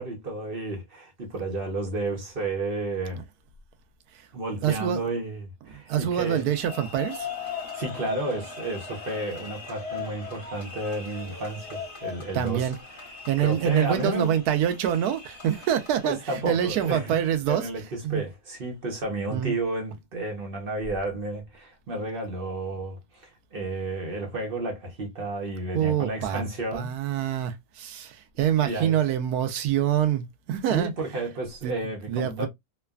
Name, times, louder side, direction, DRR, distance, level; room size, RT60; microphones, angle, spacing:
voice 1, 0.0-3.2 4.3-6.5 7.7-12.7 13.4-14.4 16.0-17.2 17.5-26.9 28.6-29.0 30.7-32.5, right 2 dB, 45° right, 0.9 m, -32 dB
voice 2, 4.6-5.1 5.7-7.3 12.3-12.8 13.3-17.7 18.0-18.2 19.3-19.5 25.7-26.4 26.7-30.9 31.6-31.8 32.1-32.5, right 10 dB, 85° right, 1.1 m, -26 dB
sound 1, 6.3-17.4, left 5 dB, 40° left, 1.3 m, -40 dB
3.1 x 2.2 x 2.3 m
omnidirectional pair, 1.6 m